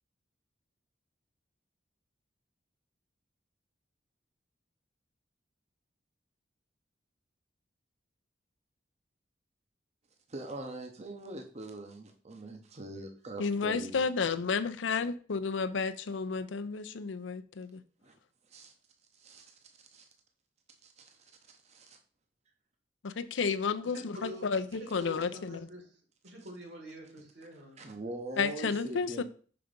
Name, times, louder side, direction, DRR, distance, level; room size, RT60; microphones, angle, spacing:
voice 1, 10.3-14.0 18.0-18.2 18.5-18.7 19.1-19.5 19.9-20.1 20.8-21.3 21.6-22.0 27.8-29.2, right 2 dB, 35° right, 0.7 m, -43 dB
voice 2, 13.4-17.8 23.0-25.7 28.4-29.2, left 5 dB, 90° left, 0.5 m, -32 dB
voice 3, 23.9-25.9 26.2-27.8, equal, 65° right, 2.1 m, -46 dB
5.8 x 3.8 x 5.1 m
head